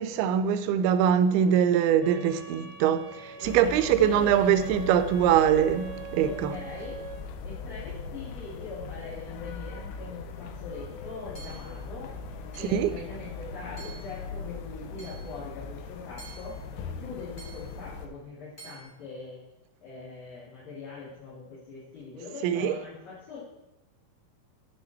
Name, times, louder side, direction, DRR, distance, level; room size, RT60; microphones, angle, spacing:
voice 1, 0.0-6.6 12.7-12.9 22.4-22.8, right 9 dB, 85° right, 2.6 m, -23 dB
sound 1, 2.0-7.2, right 6 dB, 50° right, 3.3 m, -42 dB
sound 2, 3.4-18.1, left 4 dB, 90° left, 1.7 m, -40 dB
voice 2, 3.4-4.3 6.2-7.0 7.4-12.1 12.5-16.6 17.0-19.4 19.8-23.4, left 4 dB, 65° left, 4.7 m, -42 dB
Hammer / Chink clink, 11.3-11.8 12.5-12.9 13.8-14.2 15.0-15.3 16.2-16.6 17.4-17.8 18.6-18.8, right 4 dB, 25° left, 2.0 m, -48 dB
11.0 x 6.3 x 4.4 m
omnidirectional pair, 4.4 m